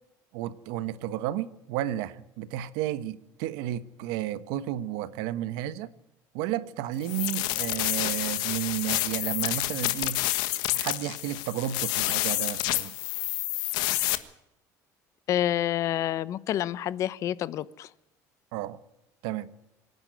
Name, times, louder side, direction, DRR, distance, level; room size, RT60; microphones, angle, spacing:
voice 1, 0.3-5.9 6.3-10.2 10.7-12.9 18.5-18.8 19.2-19.5, right 13 dB, 85° right, 1.3 m, -32 dB
sound 1, 7.0-14.2, left 18 dB, 80° left, 1.4 m, -29 dB
voice 2, 15.3-17.9, left 12 dB, 45° left, 0.8 m, -28 dB
25.5 x 10.5 x 9.5 m
cardioid pair, 160°, 7 cm